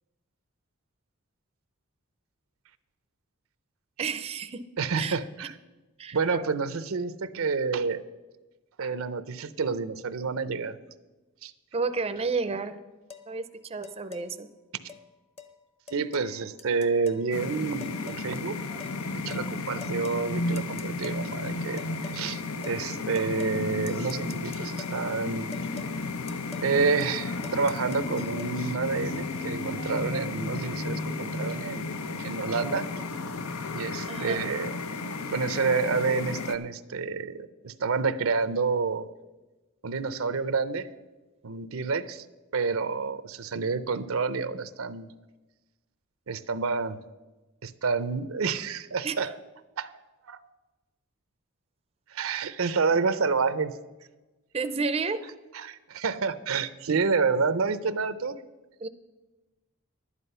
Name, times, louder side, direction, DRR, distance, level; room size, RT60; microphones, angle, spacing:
voice 1, 4.0-4.6 4.9-5.2 6.0-6.5 11.7-12.8 13.3-14.5 34.1-34.4 49.0-49.3 54.5-55.2 58.8-58.9, right 4 dB, 30° right, 10 dB, 0.5 m, -31 dB
voice 2, 4.8-5.5 6.1-8.0 8.8-10.8 11.4-11.5 14.8-14.9 15.9-18.6 19.2-25.5 26.6-31.9 32.2-32.8 33.7-34.7 35.3-39.1 39.8-40.9 41.4-42.2 42.5-45.1 46.3-47.0 47.6-49.3 49.8-49.9 50.3-50.4 52.1-53.7 55.5-58.4, right 4 dB, 75° right, 14 dB, 0.6 m, -29 dB
sound 1, 13.1-13.3 13.8-14.3 14.9-15.0 15.4-15.5 15.9-16.3 16.6-17.3 17.8-18.3 18.8-19.0 19.3-19.5 19.8-20.2 20.6-21.2 21.8-22.2 22.6-22.8 23.1-23.6 23.9-25.0 25.5-25.9 26.3-26.7 27.0-27.2 27.4-28.5, left 5 dB, 30° left, 0.8 m, -45 dB
sound 2, 17.3-36.6, left 3 dB, 85° left, 0.8 m, -33 dB
11.5 x 9.8 x 5.5 m, 1.1 s
head